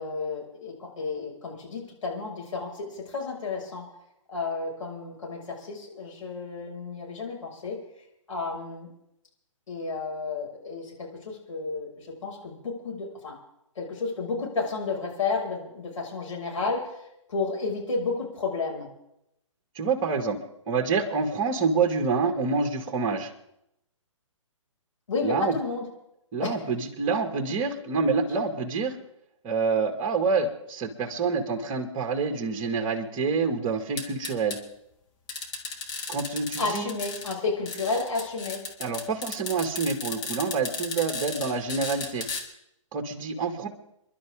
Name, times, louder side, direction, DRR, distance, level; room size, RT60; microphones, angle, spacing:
voice 1, 0.0-3.9 4.3-7.8 8.3-8.9 9.7-13.4 13.8-18.9 25.1-25.9 26.4-26.5 36.6-38.6, left 4 dB, 70° left, -1 dB, 6.2 m, -32 dB
voice 2, 19.8-20.4 20.7-23.3 25.2-25.5 26.3-29.0 29.4-34.6 36.1-36.9 38.8-42.3 42.9-43.7, right 4 dB, 30° right, 4 dB, 2.2 m, -27 dB
sound 1, 34.0-34.6 35.3-37.3 37.7-42.4, left 4 dB, 25° left, 2.1 m, -35 dB
29.0 x 11.5 x 3.7 m, 0.81 s
hypercardioid pair, 135°, 17 cm